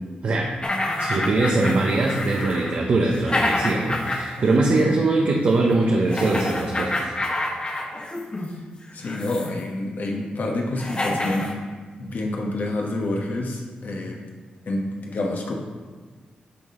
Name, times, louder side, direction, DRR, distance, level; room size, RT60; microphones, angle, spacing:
sound 1, 0.6-4.5 4.8-5.0 6.1-8.5 9.0-9.6 10.4-10.5 10.8-11.5, left 1 dB, 30° left, 1.1 m, -28 dB
voice 1, 1.0-7.1, right 2 dB, 60° right, -1 dB, 0.8 m, -21 dB
voice 2, 8.9-11.6 12.0-14.2 14.7-15.5, left 2 dB, 65° left, 1 dB, 1.2 m, -28 dB
9.8 x 3.9 x 3.7 m, 1.4 s
cardioid pair, 50°, 3 cm